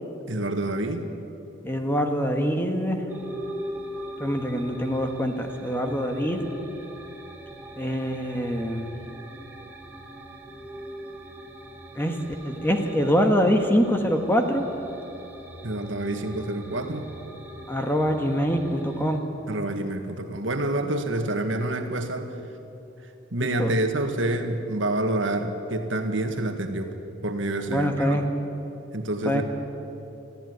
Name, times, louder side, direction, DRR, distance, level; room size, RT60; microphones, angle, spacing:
voice 1, 0.3-1.0 15.6-17.1 19.5-22.3 23.3-26.9 27.2-28.2 28.9-29.4, right 1 dB, 70° right, 6 dB, 1.7 m, -27 dB
voice 2, 1.6-3.0 4.2-6.4 7.8-8.9 11.9-12.1 12.4-14.6 17.7-19.2 23.4-23.7 27.7-28.3 29.2-29.4, equal, 10° left, 4 dB, 1.5 m, -24 dB
sound 1, 3.1-19.2, equal, 10° right, 1.9 m, -41 dB
22.5 x 14.5 x 9.5 m, 3.0 s
head